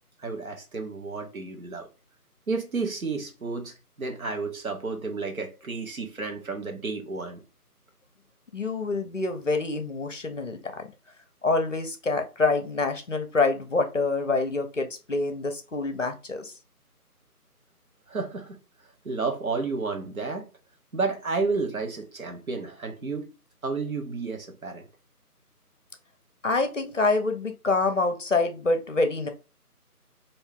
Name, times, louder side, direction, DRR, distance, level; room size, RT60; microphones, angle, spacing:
voice 1, 0.2-1.9 2.5-7.4 18.1-18.6 19.0-20.5 20.9-23.3 23.6-24.9, right 4 dB, 60° right, 1.0 m, -31 dB
voice 2, 8.5-10.9 11.4-16.5 26.4-29.3, left 3 dB, 50° left, 0.6 m, -26 dB
3.2 x 2.6 x 3.6 m
figure-of-eight pair, 170°, 47 cm